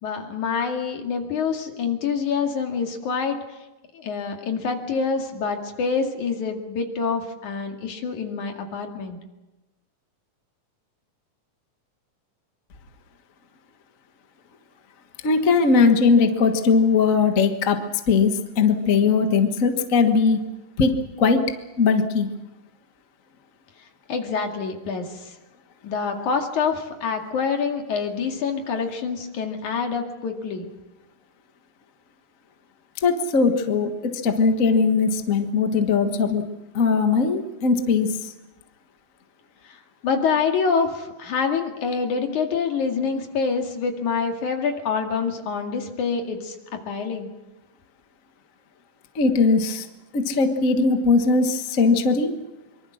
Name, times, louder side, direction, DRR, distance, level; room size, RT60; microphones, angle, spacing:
voice 1, 0.0-3.4 3.9-9.2 24.1-25.1 25.8-30.7 40.0-46.6 46.9-47.3, left 5 dB, 70° left, 3 dB, 3.6 m, -26 dB
voice 2, 15.2-17.8 18.1-20.4 20.8-21.4 21.8-22.3 33.0-36.4 36.7-38.3 49.1-49.9 50.1-52.3, left 4 dB, 40° left, 6 dB, 1.2 m, -20 dB
24.0 x 23.5 x 6.4 m, 1.1 s
omnidirectional pair, 3.7 m